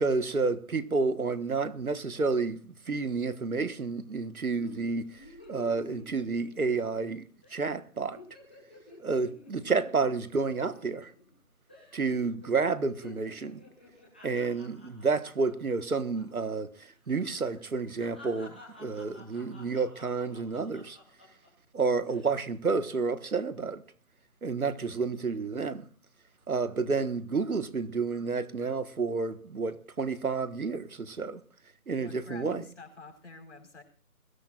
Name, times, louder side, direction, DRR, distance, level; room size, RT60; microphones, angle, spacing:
voice 1, 0.0-7.2 7.5-8.2 9.0-11.1 11.9-13.6 14.2-21.0 21.7-23.8 24.4-25.9 26.5-31.4 31.9-32.6, right 4 dB, 85° right, 1.6 m, -30 dB
sound 1, 4.6-7.1 7.4-7.6 7.9-11.4 11.7-12.1 12.4-16.5 16.7-16.9 17.4-21.5 22.0-22.4, left 2 dB, 5° left, 1.4 m, -51 dB
voice 2, 32.0-33.8, left 3 dB, 55° left, 4.7 m, -47 dB
22.0 x 16.5 x 2.5 m
figure-of-eight pair, 175°, 42 cm